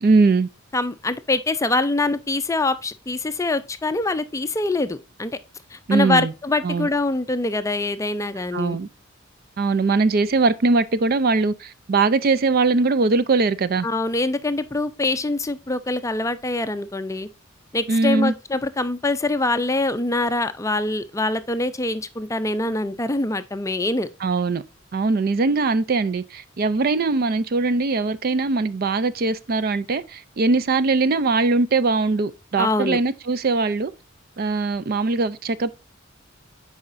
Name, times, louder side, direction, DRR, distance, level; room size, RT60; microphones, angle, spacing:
voice 1, 0.0-0.5 5.9-6.3 6.6-6.9 8.5-8.9 9.6-13.9 17.9-18.3 24.2-24.6 24.9-33.9 34.4-35.7, right 3 dB, 50° right, 0.4 m, -21 dB
voice 2, 0.7-5.4 5.7-8.8 13.8-17.3 17.7-24.1 32.6-33.0, left 2 dB, 15° left, 0.5 m, -24 dB
8.5 x 4.9 x 2.5 m
head